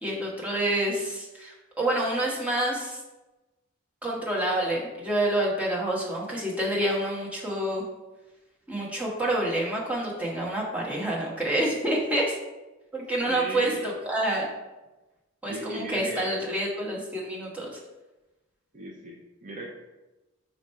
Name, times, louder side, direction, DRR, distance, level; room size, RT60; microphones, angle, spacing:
voice 1, 0.0-3.0 4.0-7.8 8.7-12.3 12.9-14.5 15.4-17.8, right 1 dB, 5° right, -4 dB, 1.2 m, -28 dB
voice 2, 13.3-13.8 15.5-16.5 18.7-19.7, right 2 dB, 35° right, -1 dB, 0.7 m, -37 dB
5.1 x 4.2 x 4.3 m, 1.1 s
head